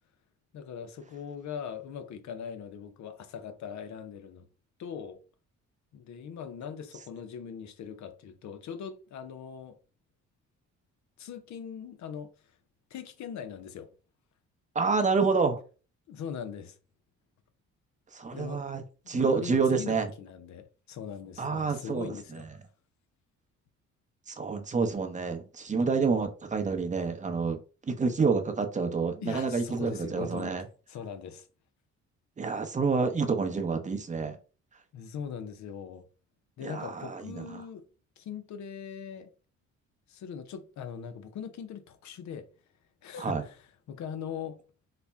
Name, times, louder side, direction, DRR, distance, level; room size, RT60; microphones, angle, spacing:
voice 1, 0.5-4.5 4.8-5.2 5.9-9.8 11.2-12.3 12.9-13.9 16.1-16.8 18.3-18.6 19.0-22.5 29.2-30.5 30.9-31.5 34.9-36.0 36.6-37.9 38.2-39.3 40.1-42.5 43.0-44.6, left 7 dB, 65° left, 0.6 m, -40 dB
voice 2, 14.7-15.6 18.1-20.1 21.4-22.5 24.3-27.6 27.9-30.6 32.4-34.4 36.6-37.6 43.2-43.4, right 4 dB, 25° right, 0.7 m, -28 dB
4.1 x 2.1 x 3.4 m
cardioid pair, 90°, 30 cm